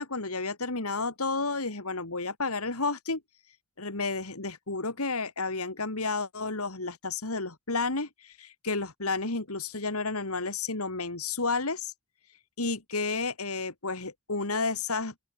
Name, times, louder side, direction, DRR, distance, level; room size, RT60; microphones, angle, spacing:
voice 1, 0.0-3.2 3.8-11.9 12.6-15.3, left 3 dB, 80° left, 3.3 m, -31 dB
open air
head